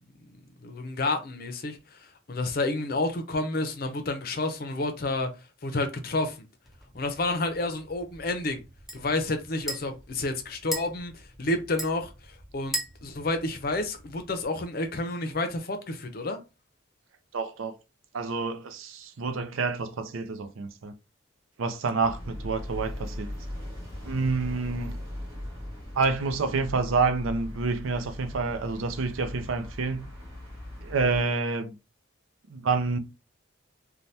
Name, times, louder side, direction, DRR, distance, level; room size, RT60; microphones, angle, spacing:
voice 1, 0.6-5.3 5.6-6.4 6.9-8.6 8.9-16.4, left 2 dB, 50° left, 0.5 m, -30 dB
sound 1, 6.6-14.5, equal, ahead, 0.6 m, -41 dB
voice 2, 17.3-17.7 18.1-20.9 21.6-23.3 24.0-24.9 25.9-30.1 30.8-31.7 32.5-33.0, right 4 dB, 85° right, 0.5 m, -28 dB
sound 2, 22.0-31.2, left 1 dB, 25° right, 1.6 m, -39 dB
3.3 x 2.2 x 2.7 m
head